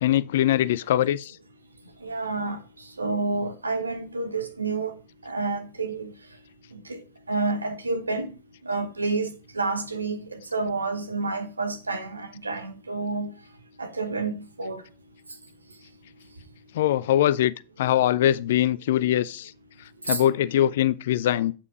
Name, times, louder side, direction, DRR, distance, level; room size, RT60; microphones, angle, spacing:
voice 1, 0.0-1.4 16.7-17.5 17.8-19.5 20.1-21.5, left 12 dB, 55° left, 0.3 m, -22 dB
voice 2, 2.0-2.6 3.0-4.9 5.2-6.1 6.7-7.0 7.3-8.3 8.6-13.3 13.8-14.8 20.1-20.2, right 3 dB, 80° right, 1.2 m, -29 dB
8.6 x 5.2 x 5.0 m
figure-of-eight pair, 90°, 0 cm